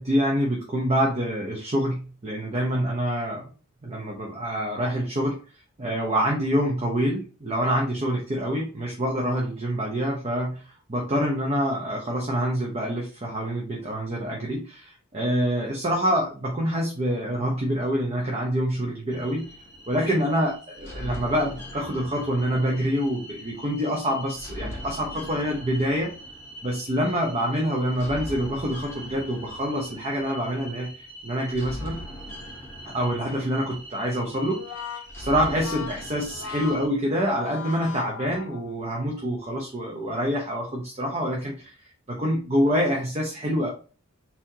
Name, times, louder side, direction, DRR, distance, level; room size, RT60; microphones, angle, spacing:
voice 1, 0.0-3.5 3.8-5.4 5.8-10.6 10.9-19.5 19.9-26.1 26.6-30.9 31.2-32.0 32.8-34.9 35.2-41.7 42.2-43.7, equal, 30° right, -1 dB, 0.7 m, -26 dB
sound 1, 19.1-36.9, equal, 10° left, 0.9 m, -41 dB
Brass instrument, 34.4-38.9, left 6 dB, 85° left, 0.5 m, -39 dB
4.1 x 2.8 x 2.6 m, 0.37 s
head